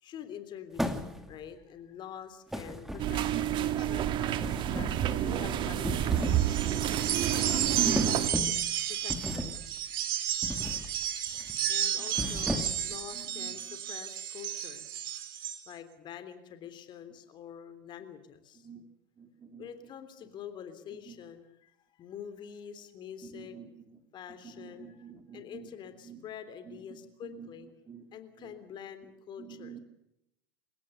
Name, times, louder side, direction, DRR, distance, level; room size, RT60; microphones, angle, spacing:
voice 1, 0.0-3.3 3.6-4.1 4.7-6.6 7.2-8.0 8.9-9.6 11.7-15.0 15.7-18.7 19.6-23.6 24.1-25.1 25.3-27.7 28.1-29.8, left 9 dB, 40° left, 10 dB, 3.4 m, -46 dB
sound 1, 0.8-1.4 2.5-3.4 4.4-5.1 5.7-6.5 6.9-7.1 8.0-8.7 9.1-9.7 10.4-10.9 11.3-11.6 12.1-12.9, equal, 5° right, 2.6 m, -35 dB
sound 2, 3.0-8.3, right 11 dB, 40° right, 1.7 m, -29 dB
sound 3, 6.2-15.6, right 11 dB, 70° right, 2.2 m, -32 dB
voice 2, 7.8-8.2 12.0-12.4 12.9-13.8 18.5-18.9 19.2-19.7 21.0-21.2 23.2-24.0 24.3-26.3 26.7-27.5 27.9-28.1 28.4-28.6 29.4-29.8, right 5 dB, 25° right, 6 dB, 3.8 m, -42 dB
29.0 x 16.5 x 6.8 m, 0.83 s
hypercardioid pair, 90°, 12 cm